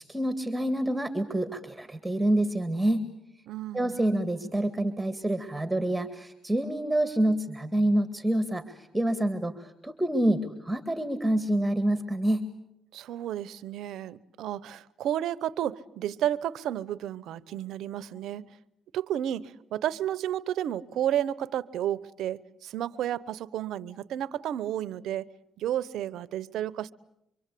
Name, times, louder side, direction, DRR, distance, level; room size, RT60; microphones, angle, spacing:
voice 1, 0.0-3.0 3.7-12.4, right 1 dB, 10° right, 10 dB, 2.1 m, -27 dB
voice 2, 3.5-4.0 12.9-18.5 18.9-25.3 25.6-26.9, right 11 dB, 75° right, 16 dB, 0.9 m, -32 dB
25.5 x 24.5 x 8.5 m, 0.82 s
cardioid pair, 80°, 0 cm